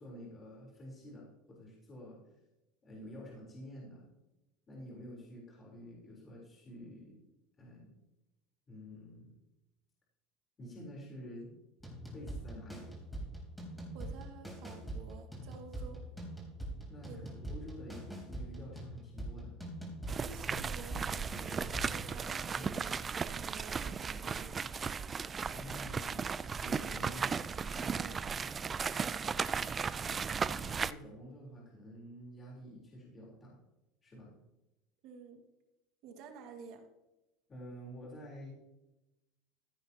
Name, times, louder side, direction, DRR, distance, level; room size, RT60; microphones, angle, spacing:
voice 1, 0.0-2.2 2.8-4.1 4.7-7.2 7.6-8.0 8.7-9.3 10.6-11.5 12.1-13.0 16.9-19.6 22.5-22.8 25.5-26.3 26.6-27.3 27.7-28.5 30.0-30.2 30.5-33.6 34.0-34.3 37.5-38.5, equal, 25° left, -4 dB, 3.7 m, -49 dB
sound 1, 11.8-22.1, right 1 dB, ahead, 3.5 m, -44 dB
voice 2, 13.9-16.0 17.1-17.3 20.1-23.0 23.2-24.6 28.0-28.1 29.1-29.5 35.0-35.4 36.0-36.9, right 6 dB, 60° right, 5 dB, 1.8 m, -51 dB
sound 2, 20.1-30.9, right 6 dB, 25° right, 0.4 m, -36 dB
15.0 x 9.8 x 2.9 m, 0.96 s
supercardioid pair, 130°, 0 cm